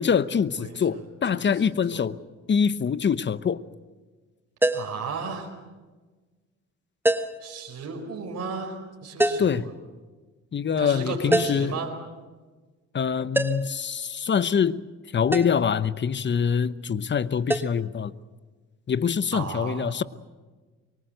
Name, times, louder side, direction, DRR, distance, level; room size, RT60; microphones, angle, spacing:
voice 1, 0.0-2.2 2.5-3.6 9.4-9.7 10.5-11.7 12.9-14.8 15.1-18.1 18.9-20.0, left 7 dB, 35° left, 0.9 m, -24 dB
voice 2, 0.5-1.0 1.3-1.5 1.9-2.0 4.7-5.5 7.4-9.7 10.8-11.9 19.3-20.0, right 4 dB, 55° right, 4.8 m, -35 dB
sound 1, 4.6-5.0 7.1-7.5 9.2-9.6 11.3-11.7 13.3-13.8 15.3-15.6 17.5-17.7, right 1 dB, 5° right, 1.3 m, -24 dB
24.0 x 23.5 x 7.9 m
cardioid pair, 90°, 30 cm